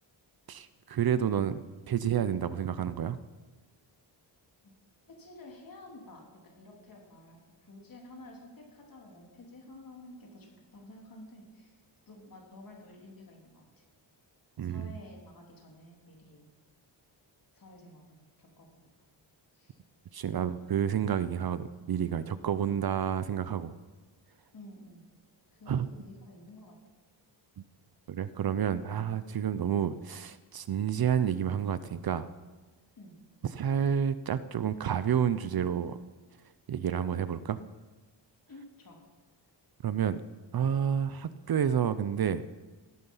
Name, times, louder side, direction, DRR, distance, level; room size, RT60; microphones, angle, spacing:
voice 1, 0.5-1.6 1.9-3.2 14.6-14.9 20.1-23.7 25.7-25.9 27.6-27.7 28.1-32.3 33.4-36.0 36.7-37.6 39.8-40.2 40.5-42.4, right 8 dB, 50° right, 14 dB, 0.6 m, -29 dB
voice 2, 5.1-13.8 14.6-16.5 17.5-18.9 19.5-19.8 24.5-25.0 25.5-26.8 29.6-29.7 33.0-33.1 38.5-39.0, left 1 dB, 45° left, 0 dB, 3.5 m, -51 dB
17.5 x 12.0 x 5.6 m, 1.2 s
wide cardioid pair, 160°, 46 cm